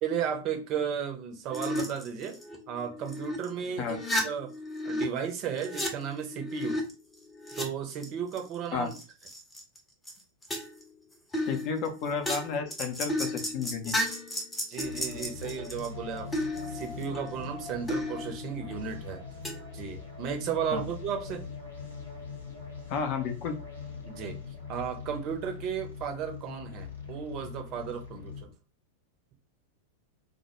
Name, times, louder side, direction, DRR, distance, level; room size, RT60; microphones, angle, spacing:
voice 1, 0.0-2.4 2.7-4.5 4.8-6.8 7.6-8.9 14.7-19.2 19.7-21.4 24.0-24.4 24.7-28.5, right 7 dB, 35° right, 4 dB, 0.6 m, -34 dB
sound 1, 1.5-3.5 3.8-5.0 5.3-7.6 7.9-8.6 8.9-9.8 10.1-10.2 10.4-10.9 11.3-15.9 16.3-17.5 17.9-18.8 19.4-19.8, left 1 dB, 10° left, 0.7 m, -34 dB
voice 2, 11.4-14.0 20.7-20.8 22.9-23.5, left 6 dB, 40° left, 6 dB, 0.6 m, -32 dB
sound 2, 14.8-28.4, left 5 dB, 75° left, 0.8 m, -42 dB
2.2 x 2.1 x 2.9 m, 0.32 s
figure-of-eight pair, 90°, 0 cm